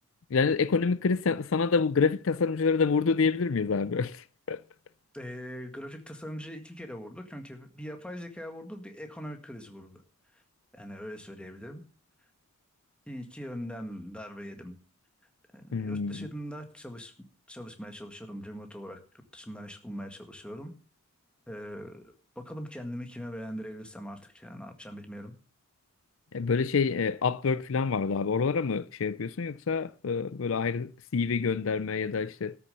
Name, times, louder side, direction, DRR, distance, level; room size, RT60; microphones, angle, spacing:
voice 1, 0.3-4.6 15.7-16.3 26.3-32.6, left 5 dB, 70° left, 0.5 m, -27 dB
voice 2, 5.1-10.0 10.3-10.4 10.7-11.8 13.1-14.7 15.5-17.1 17.5-19.0 19.3-20.7 21.5-25.3, equal, 5° left, 1.7 m, -41 dB
13.0 x 7.0 x 6.8 m
head